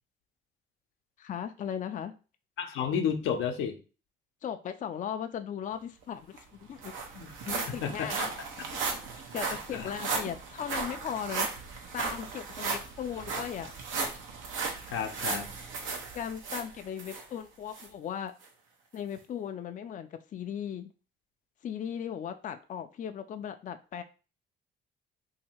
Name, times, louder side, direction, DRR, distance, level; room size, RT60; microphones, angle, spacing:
voice 1, 1.2-2.1 4.4-6.9 7.5-8.3 8.7-11.5 11.9-14.1 16.1-18.3 18.9-20.9 21.6-24.0, left 8 dB, 40° left, 0.4 m, -37 dB
voice 2, 2.6-3.8 7.1-7.3 7.7-8.1 8.6-8.7 9.7-9.9 14.9-15.5, left 7 dB, 85° left, 0.7 m, -31 dB
sound 1, 6.0-6.1 6.4-17.2 17.7-17.9 18.4-18.5, right 4 dB, 90° right, 0.9 m, -36 dB
2.8 x 2.7 x 4.3 m
cardioid pair, 90°, 20 cm